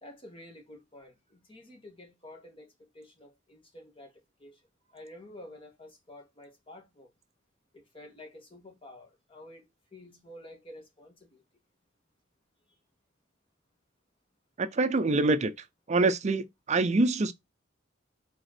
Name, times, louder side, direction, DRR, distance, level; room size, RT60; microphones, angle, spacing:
voice 1, 0.0-4.6 4.9-7.1 7.7-11.4 12.7-12.8, left 1 dB, 30° left, 2.2 m, -50 dB
voice 2, 14.6-15.5 15.9-17.3, right 3 dB, 35° right, 0.5 m, -25 dB
5.3 x 4.2 x 5.8 m
head